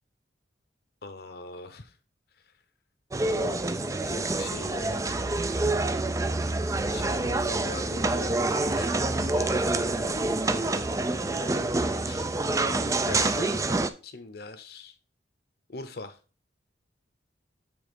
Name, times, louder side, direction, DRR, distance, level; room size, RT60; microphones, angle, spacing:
voice 1, 1.0-1.9 3.3-5.1 6.9-10.9 11.3-12.3 13.0-13.6 14.0-14.9 15.7-16.2, left 2 dB, 55° left, 0.9 m, -41 dB
sound 1, 3.1-13.9, right 2 dB, 15° right, 0.4 m, -27 dB
7.0 x 3.6 x 5.2 m
head